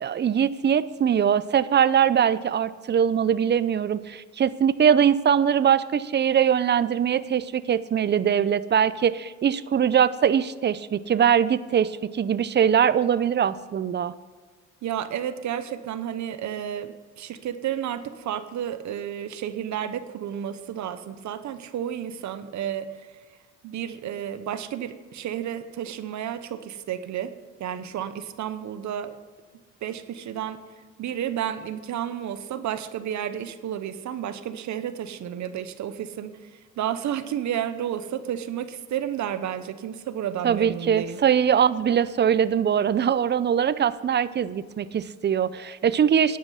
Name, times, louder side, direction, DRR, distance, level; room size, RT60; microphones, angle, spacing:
voice 1, 0.0-14.1 40.4-46.4, right 8 dB, 35° right, 16 dB, 0.5 m, -22 dB
voice 2, 14.8-22.9 23.6-27.3 27.6-29.1 29.8-30.6 31.0-36.4 36.8-41.2, right 10 dB, 70° right, 11 dB, 0.9 m, -31 dB
11.0 x 9.6 x 5.6 m, 1.5 s
cardioid pair, 90°, 30 cm